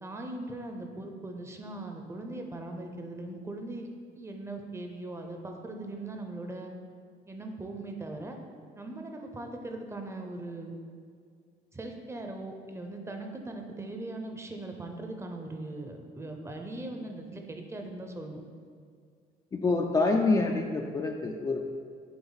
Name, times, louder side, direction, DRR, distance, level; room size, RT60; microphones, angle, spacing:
voice 1, 0.0-3.9 4.1-6.7 7.3-8.4 8.7-10.7 11.7-18.4, right 2 dB, 15° right, 3 dB, 0.6 m, -40 dB
voice 2, 19.5-21.7, left 3 dB, 20° left, 2 dB, 0.4 m, -26 dB
7.0 x 3.5 x 4.0 m, 2.1 s
cardioid pair, 110°, 17 cm